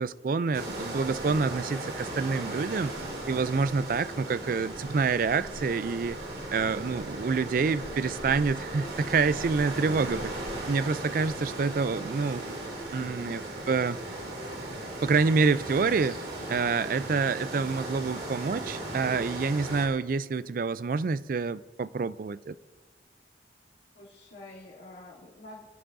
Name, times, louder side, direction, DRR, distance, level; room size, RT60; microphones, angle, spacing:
voice 1, 0.0-2.9 3.3-6.2 6.5-10.3 10.7-12.4 12.9-13.4 13.7-14.0 15.0-16.2 16.5-22.6, right 4 dB, 50° right, 0.4 m, -27 dB
sound 1, 0.5-19.9, right 2 dB, 65° right, 2.7 m, -37 dB
voice 2, 13.0-13.4 23.9-25.7, left 2 dB, 80° left, 2.9 m, -48 dB
23.5 x 10.0 x 2.6 m
head